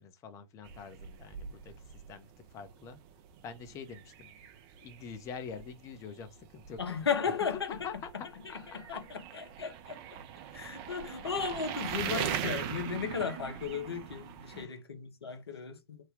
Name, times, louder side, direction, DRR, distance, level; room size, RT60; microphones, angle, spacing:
voice 1, 0.0-3.0 3.4-4.3 4.8-7.1 7.7-9.0 14.4-14.8, left 6 dB, 25° left, 0.6 m, -46 dB
sound 1, 0.6-14.6, right 9 dB, 30° right, 0.5 m, -41 dB
voice 2, 6.8-7.9 8.4-10.2 10.5-16.0, left 6 dB, 75° left, 0.8 m, -35 dB
3.2 x 2.2 x 3.4 m
figure-of-eight pair, 110°, 13 cm